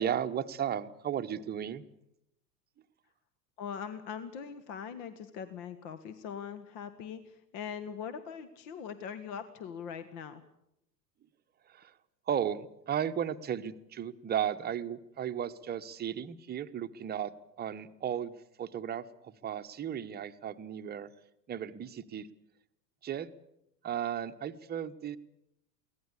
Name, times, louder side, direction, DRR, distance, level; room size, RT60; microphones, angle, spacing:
voice 1, 0.0-1.8 11.7-11.9 12.3-17.3 17.6-18.3 18.6-21.1 21.5-22.3 23.0-23.3 23.8-25.2, right 9 dB, 20° right, 9 dB, 1.0 m, -35 dB
voice 2, 3.6-10.4, left 7 dB, 50° left, 12 dB, 1.6 m, -41 dB
24.0 x 17.5 x 8.5 m, 0.81 s
figure-of-eight pair, 90°, 50 cm